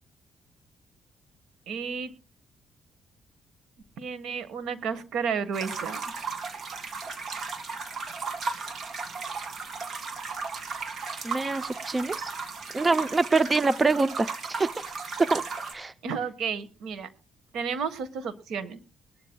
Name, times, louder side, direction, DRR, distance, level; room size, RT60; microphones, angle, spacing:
voice 1, 1.7-2.1 4.0-6.0 16.0-17.1 17.5-18.8, right 6 dB, 80° right, 13 dB, 1.4 m, -32 dB
sound 1, 5.5-15.7, right 4 dB, 55° right, 2.0 m, -35 dB
voice 2, 11.2-12.3 12.7-14.7 15.2-15.4 15.7-15.9, right 3 dB, 25° right, 14 dB, 0.6 m, -25 dB
20.5 x 12.5 x 2.3 m, 0.33 s
cardioid pair, 90°, 0 cm